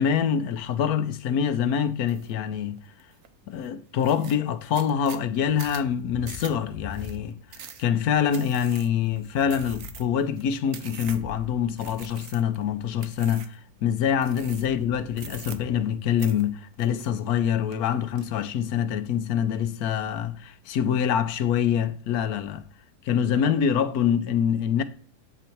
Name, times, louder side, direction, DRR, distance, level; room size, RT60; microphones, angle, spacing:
voice 1, 0.0-2.8 3.5-22.6 23.0-24.8, left 8 dB, 80° left, 1.2 m, -25 dB
sound 1, 2.1-2.3 2.8-3.3 3.6-3.7 4.0-11.4 11.8-12.6 13.0-13.6 14.2-14.8 15.1-15.9 16.2-17.4 17.7-18.3, right 8 dB, 65° right, 1.2 m, -44 dB
Thunder, 5.4-7.7 8.0-12.8 13.9-16.5, left 6 dB, 65° left, 0.4 m, -46 dB
8.0 x 4.1 x 4.3 m
omnidirectional pair, 1.6 m